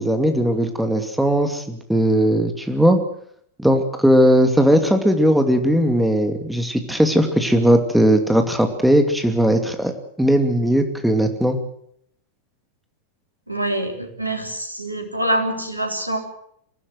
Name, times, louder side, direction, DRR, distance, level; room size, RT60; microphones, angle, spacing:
voice 1, 0.0-3.0 3.6-9.9 10.2-11.6, equal, ahead, 6 dB, 2.5 m, -18 dB
voice 2, 13.5-16.2, right 1 dB, 85° right, 4 dB, 3.6 m, -25 dB
24.0 x 16.0 x 7.8 m, 0.70 s
figure-of-eight pair, 90°, 0 cm